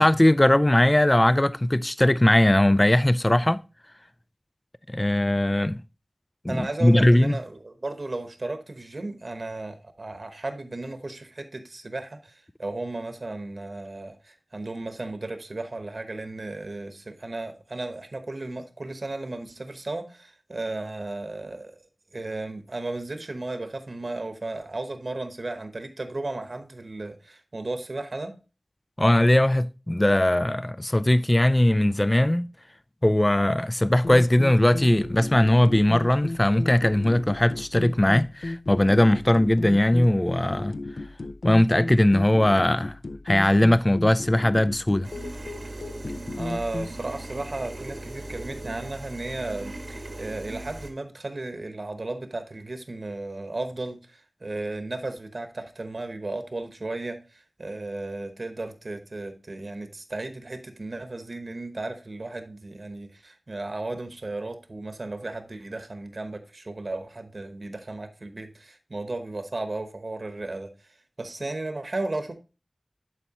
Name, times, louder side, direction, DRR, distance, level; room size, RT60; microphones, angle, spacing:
voice 1, 0.0-3.6 4.9-5.8 6.4-7.4 29.0-32.5 33.0-40.7 41.4-42.9 43.3-45.1, left 1 dB, 25° left, 0.3 m, -20 dB
voice 2, 6.5-21.7 22.1-28.4 46.1-72.3, right 2 dB, 60° right, 1.0 m, -35 dB
sound 1, 34.0-46.9, left 2 dB, 75° left, 0.5 m, -35 dB
sound 2, 45.0-50.9, right 1 dB, 85° right, 1.3 m, -38 dB
11.0 x 4.5 x 2.9 m
wide cardioid pair, 65°, 0 cm